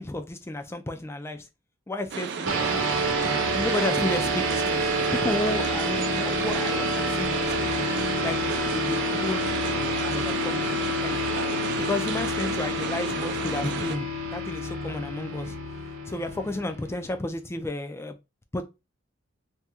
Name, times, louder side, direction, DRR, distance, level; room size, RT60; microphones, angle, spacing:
voice 1, 0.0-1.5 1.9-2.9 3.5-7.9 8.2-11.2 11.8-15.6 16.1-18.2 18.5-18.6, left 2 dB, 15° left, 0.3 m, -32 dB
sound 1, 2.1-14.0, right 6 dB, 55° right, 0.4 m, -33 dB
sound 2, 2.5-17.3, equal, 80° right, 0.9 m, -28 dB
2.8 x 2.2 x 3.5 m
head